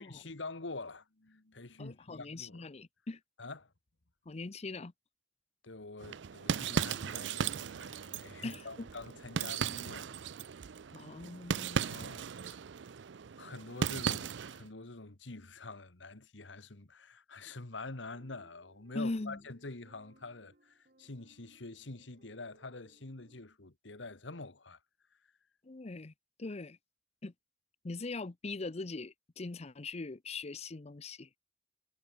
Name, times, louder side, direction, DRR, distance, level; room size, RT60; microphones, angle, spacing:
voice 1, 0.0-2.7 3.4-3.7 5.6-10.2 11.7-12.6 13.4-24.8, left 3 dB, 80° left, 1.8 m, -46 dB
voice 2, 1.8-3.2 4.3-4.9 8.4-8.9 10.9-11.9 18.9-19.4 25.6-26.1 26.4-26.8 27.2-27.3 27.8-31.3, left 3 dB, 35° left, 0.7 m, -41 dB
sound 1, 6.0-14.7, right 7 dB, 70° right, 0.5 m, -37 dB
sound 2, 18.1-23.4, right 1 dB, 50° right, 3.9 m, -66 dB
head